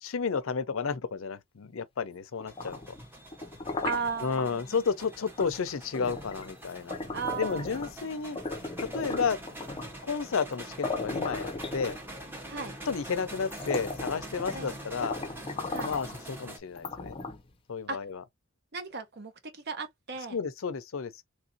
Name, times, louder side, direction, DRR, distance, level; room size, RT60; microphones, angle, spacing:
voice 1, 0.0-2.8 4.2-7.0 7.4-8.4 8.9-9.4 10.0-12.0 12.9-15.2 15.8-17.2 17.7-18.2 20.3-21.2, left 5 dB, 80° left, 0.5 m, -32 dB
sound 1, 2.4-4.5 5.4-5.6 5.9-8.0 8.4-10.0 10.5-10.6 10.8-12.3 13.0-13.1 13.4-14.7 15.0-16.2 16.8-17.6, left 3 dB, 25° left, 0.5 m, -36 dB
sound 2, 2.5-16.6, right 1 dB, 10° right, 0.8 m, -45 dB
voice 2, 3.8-4.7 7.1-7.7 8.0-8.2 8.8-9.2 12.5-12.7 14.5-14.8 15.7-15.9 17.9-18.0 18.7-20.4, right 5 dB, 55° right, 0.9 m, -36 dB
3.4 x 2.6 x 2.5 m
head